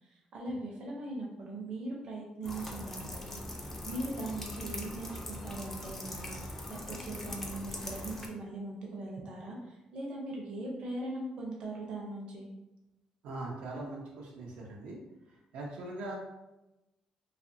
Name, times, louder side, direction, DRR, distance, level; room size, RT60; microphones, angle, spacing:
voice 1, 0.0-12.5, right 2 dB, 45° right, -2 dB, 0.6 m, -40 dB
sound 1, 2.4-8.3, left 1 dB, 15° left, 0.3 m, -41 dB
voice 2, 13.2-15.0 15.5-16.2, right 2 dB, 85° right, -2 dB, 0.5 m, -41 dB
2.6 x 2.4 x 2.6 m, 0.97 s
cardioid pair, 180°, 2 cm